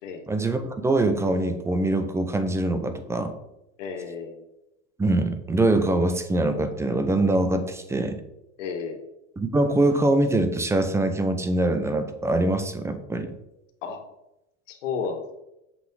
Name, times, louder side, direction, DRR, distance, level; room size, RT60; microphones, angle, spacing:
voice 1, 0.3-3.3 5.0-8.2 9.4-13.3, right 2 dB, 5° right, 9 dB, 0.6 m, -23 dB
voice 2, 3.8-4.4 8.6-9.0 13.8-14.0 14.7-15.4, left 5 dB, 80° left, 4 dB, 1.9 m, -32 dB
7.7 x 6.3 x 4.8 m, 0.90 s
supercardioid pair, 140°, 37 cm